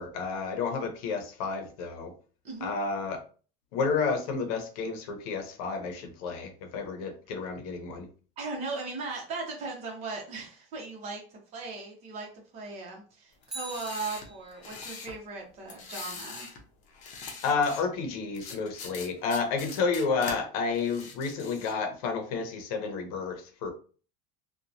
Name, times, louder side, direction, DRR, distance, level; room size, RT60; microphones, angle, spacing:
voice 1, 0.0-2.1 2.6-3.2 3.7-8.1 17.4-23.7, left 4 dB, 80° left, 5 dB, 0.7 m, -31 dB
voice 2, 8.4-16.5, right 3 dB, 35° right, 0 dB, 0.9 m, -38 dB
sound 1, 13.4-15.2 15.7-16.6 16.9-17.8 18.4-20.4 20.7-21.8, left 4 dB, 40° left, 0.7 m, -42 dB
Bicycle, 13.4-14.8 23.1-23.2, right 2 dB, ahead, 0.7 m, -43 dB
2.9 x 2.2 x 2.5 m, 0.39 s
cardioid pair, 165°, 18 cm